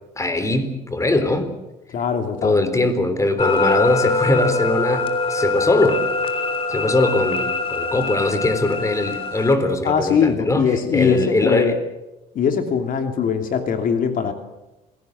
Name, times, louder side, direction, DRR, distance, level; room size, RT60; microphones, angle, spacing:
voice 1, 0.2-1.5 2.4-6.0 6.7-10.6 10.9-11.8, left 2 dB, 20° left, 10 dB, 3.8 m, -21 dB
voice 2, 1.9-2.6 9.8-11.8 12.3-14.3, left 7 dB, 55° left, 6 dB, 2.8 m, -21 dB
sound 1, 3.4-9.5, left 3 dB, 35° left, 3.3 m, -23 dB
27.0 x 18.0 x 8.0 m, 1.0 s
cardioid pair, 110°, 17 cm